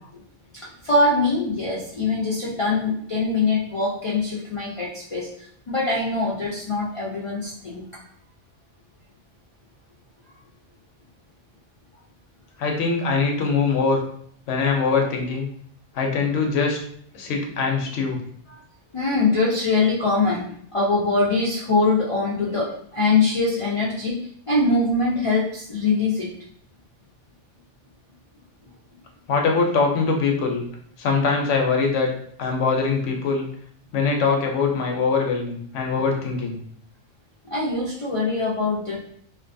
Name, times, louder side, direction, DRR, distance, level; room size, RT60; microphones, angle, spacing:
voice 1, 0.6-5.3 5.7-7.8 18.5-18.6 18.9-24.2 24.5-26.3 37.4-39.0, left 3 dB, 50° left, -6 dB, 0.3 m, -23 dB
voice 2, 12.6-14.0 14.5-15.5 15.9-16.8 17.1-18.2 29.3-30.6 31.0-32.1 32.4-33.5 33.9-36.6, left 4 dB, 85° left, 2 dB, 0.9 m, -22 dB
2.5 x 2.2 x 2.5 m, 0.63 s
omnidirectional pair, 1.2 m